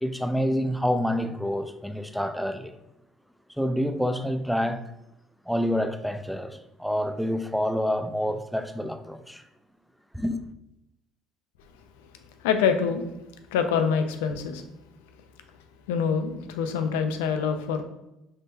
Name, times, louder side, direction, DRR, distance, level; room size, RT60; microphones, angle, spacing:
voice 1, 0.0-2.8 3.6-4.8 5.5-9.4 10.1-10.4, equal, ahead, 0.3 m, -27 dB
voice 2, 12.4-13.0 13.5-14.6 15.9-17.8, left 6 dB, 90° left, 0.4 m, -25 dB
3.6 x 3.2 x 2.7 m
supercardioid pair, 75°, 0 cm